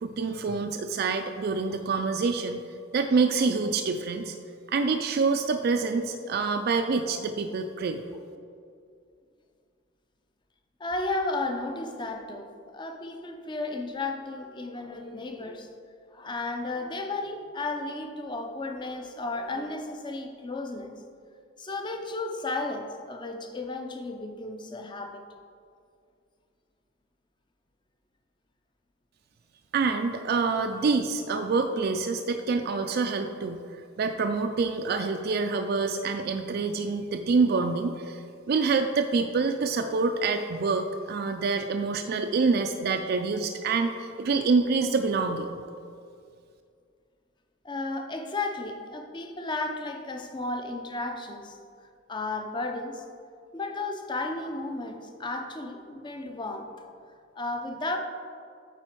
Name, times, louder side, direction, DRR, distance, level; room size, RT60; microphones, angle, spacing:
voice 1, 0.0-2.6 2.9-4.3 4.7-8.0 29.7-33.6 34.0-45.5, right 4 dB, 50° right, 5 dB, 0.3 m, -26 dB
voice 2, 10.8-15.7 16.1-21.0 21.6-25.3 37.6-37.7 47.6-51.6 52.1-53.0 53.5-56.7 57.4-58.0, left 2 dB, 20° left, 5 dB, 0.5 m, -34 dB
8.8 x 4.2 x 4.5 m, 2.3 s
head